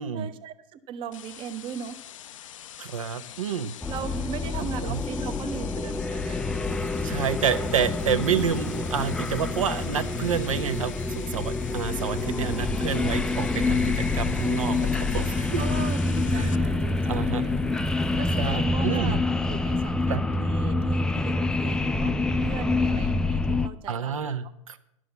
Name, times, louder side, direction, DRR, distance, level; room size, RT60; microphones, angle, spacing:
voice 1, 0.1-2.0 3.9-6.5 15.6-17.6 18.2-24.5, right 8 dB, 30° right, 11 dB, 0.7 m, -38 dB
sound 1, 1.1-16.6, left 11 dB, 70° left, 0.5 m, -44 dB
voice 2, 2.8-3.7 4.6-5.0 7.0-15.6 16.3-16.6 17.1-17.4 18.4-19.2 20.1-20.2 23.9-24.8, right 7 dB, 75° right, 10 dB, 0.6 m, -29 dB
sound 2, 3.8-23.7, left 3 dB, 5° left, 0.3 m, -27 dB
sound 3, 6.6-18.5, right 10 dB, 50° right, 1.7 m, -44 dB
11.0 x 6.3 x 6.8 m, 0.82 s
figure-of-eight pair, 100°, 17 cm